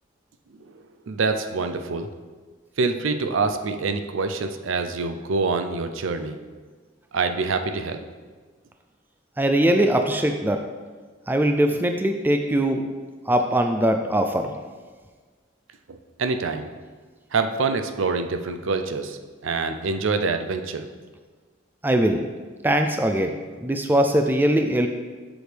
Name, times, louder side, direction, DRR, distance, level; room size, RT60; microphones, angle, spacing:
voice 1, 1.1-2.1 2.8-6.4 7.1-8.1 15.9-16.7 17.3-19.2 19.4-20.8, right 4 dB, 75° right, 7 dB, 0.5 m, -25 dB
voice 2, 9.4-10.6 11.3-12.9 13.3-14.5 21.8-22.3 22.6-23.4 23.6-24.9, right 1 dB, 10° right, 5 dB, 0.3 m, -21 dB
7.9 x 6.2 x 3.3 m, 1.5 s
head